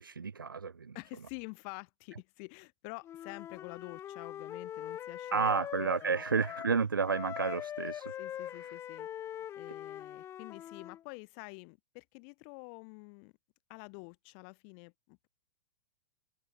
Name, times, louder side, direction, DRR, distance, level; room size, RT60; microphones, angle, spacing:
voice 1, 0.0-1.0 5.3-8.1, right 5 dB, 90° right, 0.5 m, -31 dB
voice 2, 0.9-6.2 8.1-9.1 9.4-13.3 13.7-15.3, left 40 dB or more, 45° left, 1.4 m, -48 dB
Wind instrument woodwind instrument, 3.0-6.8 7.0-11.0, left 11 dB, 25° left, 0.8 m, -42 dB
figure-of-eight pair, 105°, 11 cm